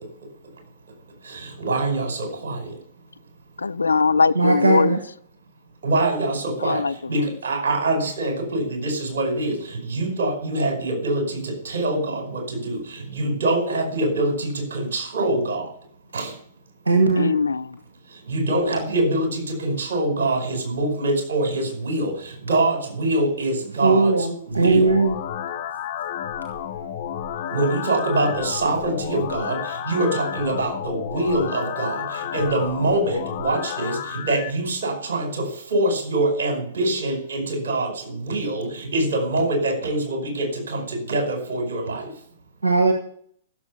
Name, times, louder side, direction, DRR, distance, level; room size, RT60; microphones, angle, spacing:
voice 1, 1.3-2.7 5.8-6.8 7.1-15.7 16.1-16.3 18.3-24.2 24.5-24.9 27.5-42.1, right 2 dB, 65° right, 5.0 m, -24 dB
voice 2, 3.6-4.9 6.6-7.4 17.2-17.8, left 4 dB, 85° left, 0.4 m, -21 dB
voice 3, 4.3-5.0 16.8-17.3 23.8-25.1 42.6-42.9, right 3 dB, 85° right, 1.5 m, -18 dB
sound 1, 24.5-34.5, left 9 dB, 50° left, 1.4 m, -31 dB
15.0 x 7.2 x 6.6 m
figure-of-eight pair, 115°, 0 cm